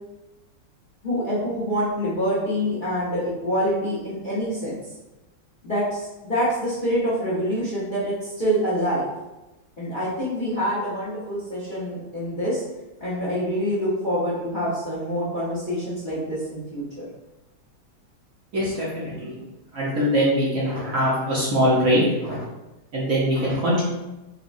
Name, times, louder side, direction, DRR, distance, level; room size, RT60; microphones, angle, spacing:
voice 1, 1.0-4.8 5.6-9.1 9.8-12.6 13.0-17.1, equal, 45° left, -8 dB, 0.7 m, -26 dB
voice 2, 18.5-19.3 19.7-22.4 22.9-23.8, equal, 60° right, -7 dB, 1.0 m, -22 dB
4.5 x 2.1 x 2.5 m, 1.0 s
omnidirectional pair, 2.1 m